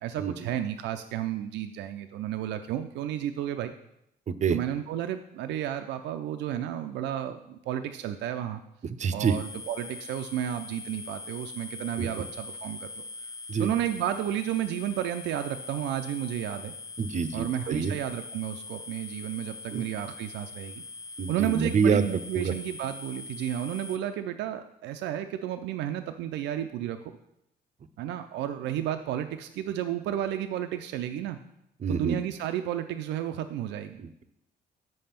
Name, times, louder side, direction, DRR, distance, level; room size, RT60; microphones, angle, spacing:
voice 1, 0.0-3.7 4.5-8.6 9.1-13.0 13.6-16.7 17.3-20.8 21.3-27.1 28.0-31.4 31.9-34.0, right 11 dB, 90° right, 8 dB, 0.5 m, -32 dB
voice 2, 9.0-9.4 12.0-12.1 13.5-13.7 17.0-17.9 19.7-19.8 21.2-22.1 22.3-22.5 31.8-32.2 34.0-34.2, right 6 dB, 45° right, 13 dB, 0.6 m, -26 dB
sound 1, 9.2-24.0, left 3 dB, 15° left, 0.7 m, -42 dB
7.6 x 5.4 x 5.8 m, 0.80 s
cardioid pair, 90°, 18 cm